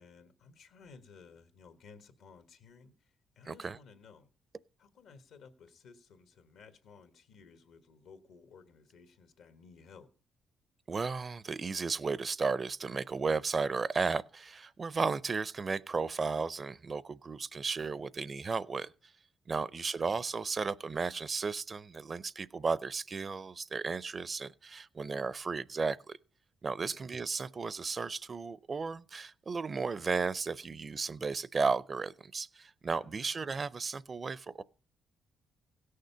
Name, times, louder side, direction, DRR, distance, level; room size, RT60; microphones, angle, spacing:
voice 1, 0.0-4.3 4.8-10.1 19.6-19.9 26.8-27.0 33.0-33.3, left 5 dB, 80° left, 1.4 m, -57 dB
voice 2, 3.5-3.8 10.9-18.9 19.5-26.2 26.6-34.6, right 4 dB, 35° right, 0.5 m, -34 dB
16.5 x 6.6 x 5.6 m
cardioid pair, 90°, 0 cm